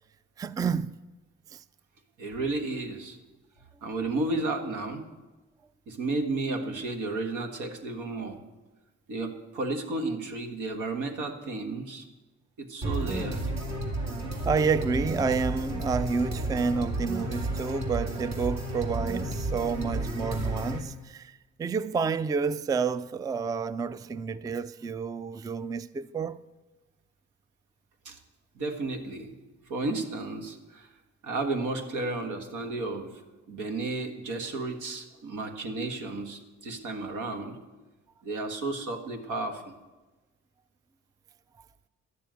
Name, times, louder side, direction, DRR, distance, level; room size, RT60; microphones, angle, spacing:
voice 1, 0.4-1.0 1.5-1.6 14.4-26.4, right 5 dB, 15° right, 0.3 m, -29 dB
voice 2, 2.2-3.2 3.8-5.1 5.9-8.4 9.1-12.0 12.6-13.4 28.0-28.2 28.5-29.3 29.7-30.9 31.2-33.1 33.5-37.6 38.2-39.7, right 2 dB, 85° right, 1.7 m, -32 dB
sound 1, 12.8-20.8, right 1 dB, 60° right, 2.5 m, -32 dB
11.5 x 7.0 x 9.2 m
cardioid pair, 90°, 30 cm